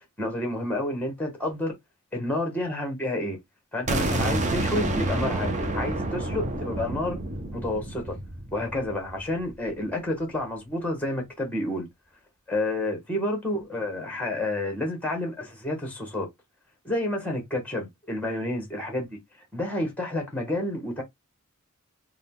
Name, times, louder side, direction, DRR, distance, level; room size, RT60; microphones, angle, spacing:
voice 1, 0.2-1.7 2.1-3.4 3.7-7.2 7.5-8.2 8.5-11.9 12.5-16.3 16.8-19.2 19.5-21.0, left 1 dB, 5° left, 1.3 m, -29 dB
sound 1, 3.9-9.7, right 2 dB, 35° right, 0.6 m, -29 dB
3.9 x 2.3 x 3.6 m
head